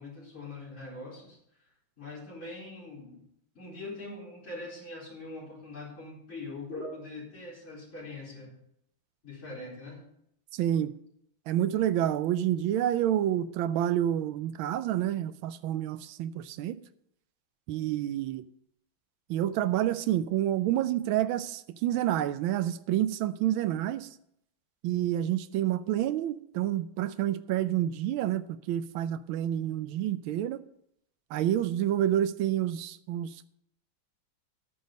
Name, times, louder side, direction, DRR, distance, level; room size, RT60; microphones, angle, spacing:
voice 1, 0.0-1.4 2.0-3.2 3.5-8.5 9.2-10.0, left 2 dB, 35° left, 4.7 m, -42 dB
voice 2, 10.5-10.9 11.5-16.8 17.7-18.4 19.3-24.1 24.8-30.6 31.3-33.5, right 12 dB, 80° right, 1.4 m, -28 dB
11.5 x 9.5 x 5.3 m
omnidirectional pair, 2.2 m